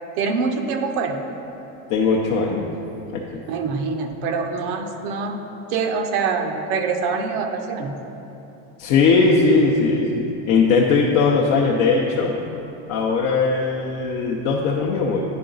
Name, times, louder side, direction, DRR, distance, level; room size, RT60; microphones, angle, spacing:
voice 1, 0.2-1.2 3.5-5.4 5.7-7.9, right 5 dB, 55° right, 5 dB, 0.7 m, -24 dB
voice 2, 1.9-2.7 3.1-3.2 8.8-12.4 12.9-15.2, left 4 dB, 45° left, -2 dB, 0.6 m, -19 dB
10.0 x 4.7 x 3.9 m, 3.0 s
cardioid pair, 165°, 38 cm